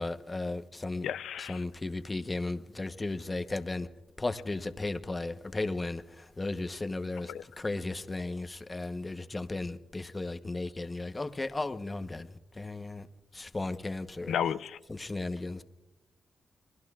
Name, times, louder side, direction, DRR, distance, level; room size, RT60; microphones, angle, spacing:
voice 1, 0.0-1.1 1.4-3.9 4.2-13.1 13.3-14.3 14.9-15.6, left 2 dB, 25° left, 1.0 m, -35 dB
voice 2, 1.0-1.6 7.3-7.4 14.3-14.8, left 9 dB, 85° left, 0.5 m, -32 dB
27.5 x 21.0 x 2.4 m
cardioid pair, 75°, 0 cm